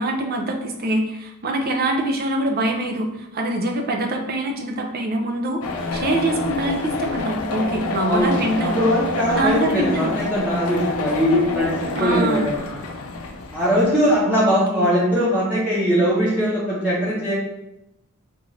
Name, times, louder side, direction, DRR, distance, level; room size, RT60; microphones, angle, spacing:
voice 1, 0.0-5.6 5.9-8.8 9.3-10.1 11.9-12.5 14.2-14.5 14.7-15.0, right 1 dB, 45° right, 2 dB, 0.5 m, -24 dB
sound 1, 5.6-14.2, left 3 dB, 75° left, 0.5 m, -28 dB
voice 2, 8.8-12.5 13.5-17.3, equal, 5° right, -11 dB, 0.9 m, -20 dB
3.6 x 2.5 x 3.2 m, 0.89 s
head